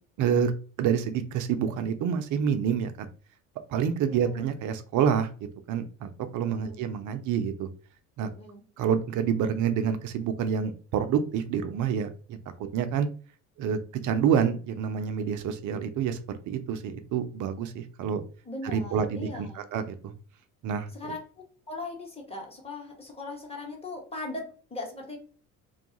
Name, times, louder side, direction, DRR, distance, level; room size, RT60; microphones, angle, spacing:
voice 1, 0.2-0.5 0.8-3.1 3.7-5.3 5.7-7.7 8.2-8.3 8.8-13.1 13.6-16.2 16.5-18.2 18.6-20.1 20.6-20.9, right 8 dB, 45° right, 9 dB, 0.5 m, -28 dB
voice 2, 4.1-4.5 6.4-6.8 8.2-8.6 18.4-19.6 20.9-21.2 21.7-25.2, left 2 dB, 15° left, 0 dB, 1.1 m, -39 dB
2.4 x 2.3 x 2.8 m, 0.39 s
hypercardioid pair, 60°, 43 cm